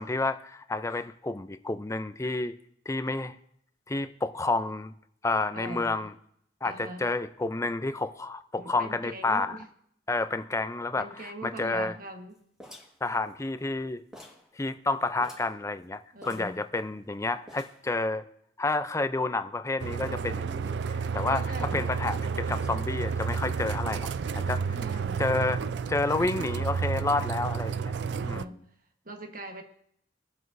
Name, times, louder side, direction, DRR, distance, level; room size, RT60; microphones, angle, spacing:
voice 1, 0.0-2.5 2.9-3.3 3.9-4.9 5.2-6.1 6.6-9.6 10.1-11.9 13.0-14.0 14.6-18.2 18.6-20.8 21.1-24.1 24.3-24.6 25.2-25.6 25.9-27.9 28.2-28.5, left 3 dB, 15° left, 10 dB, 0.5 m, -30 dB
voice 2, 5.5-6.1 6.6-7.1 8.6-9.7 11.0-12.4 16.1-16.6 21.3-21.9 24.7-25.2 28.2-28.6 29.0-29.6, right 1 dB, 50° right, 4 dB, 1.3 m, -41 dB
sound 1, 12.6-13.8 14.1-14.5 14.8-14.9 15.2-15.6 16.2-17.1 17.5-17.9, equal, 5° right, 1.6 m, -49 dB
sound 2, 19.8-28.4, right 6 dB, 70° right, 0.4 m, -31 dB
23.0 x 7.7 x 2.7 m, 0.70 s
head